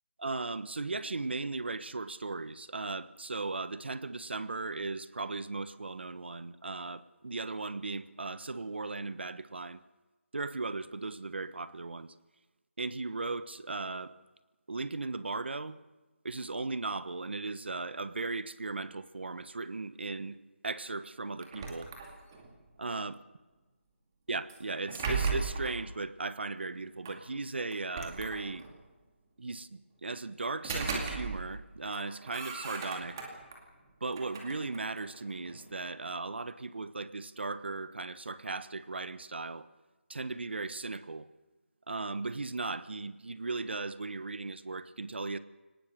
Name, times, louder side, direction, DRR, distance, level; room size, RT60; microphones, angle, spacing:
voice 1, 0.2-9.8 10.3-12.1 12.8-14.1 14.7-15.8 16.2-20.4 20.6-21.9 22.8-23.2 24.3-28.6 29.4-33.2 34.0-39.7 40.1-41.3 41.9-45.4, right 3 dB, 55° right, 14 dB, 1.3 m, -37 dB
sound 1, 21.4-22.5 24.5-25.8 27.0-27.2 27.7-28.8 30.4-31.6 31.9-33.6 34.0-35.7, right 4 dB, 15° right, 2.4 m, -37 dB
24.0 x 19.0 x 6.7 m, 1.1 s
figure-of-eight pair, 175°, 7 cm